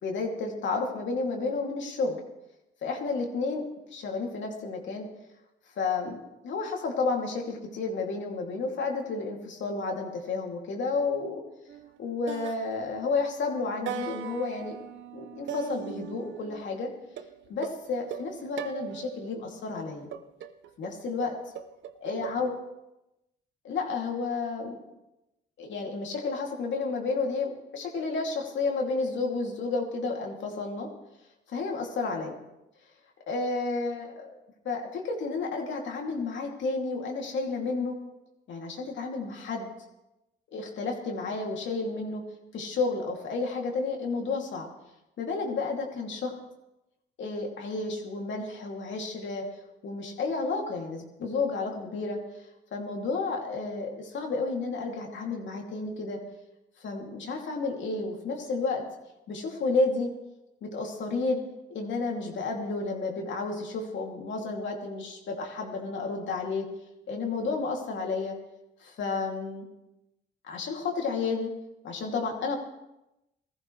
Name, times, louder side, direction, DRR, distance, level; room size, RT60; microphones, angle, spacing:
voice 1, 0.0-2.2 2.8-3.6 3.9-5.1 5.8-11.4 12.0-14.8 15.1-16.9 17.5-20.1 20.8-21.3 22.0-22.5 23.6-24.8 25.6-30.9 31.5-32.3 33.3-34.3 34.6-38.0 38.5-39.6 40.5-42.2 42.5-44.7 45.2-46.3 47.2-49.4 49.8-52.2 52.7-56.2 56.8-58.8 59.3-60.1 60.6-61.4 61.7-66.7 67.1-68.4 68.8-69.6 70.4-71.5 71.8-72.6, left 3 dB, 70° left, 0 dB, 2.8 m, -31 dB
sound 1, 11.7-12.0 12.3-13.3 13.9-16.7 17.2-19.3 20.1-22.4, right 9 dB, 70° right, 0.8 m, -40 dB
19.5 x 14.5 x 3.3 m, 0.93 s
cardioid pair, 90°, 20 cm